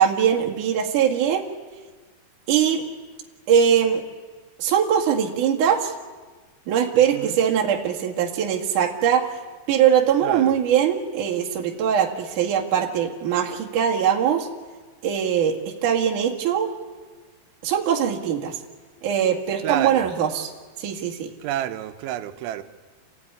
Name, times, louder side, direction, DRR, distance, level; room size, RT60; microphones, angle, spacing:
voice 1, 0.0-1.4 2.5-2.8 3.5-4.0 4.6-5.9 6.7-9.3 9.7-14.5 15.0-16.7 17.6-18.6 19.0-20.5 20.8-21.3, right 8 dB, 55° right, 0 dB, 2.9 m, -21 dB
voice 2, 7.0-7.4 10.2-10.6 19.6-20.1 21.4-22.6, right 12 dB, 85° right, 9 dB, 3.5 m, -29 dB
28.0 x 16.0 x 9.8 m, 1.4 s
omnidirectional pair, 5.3 m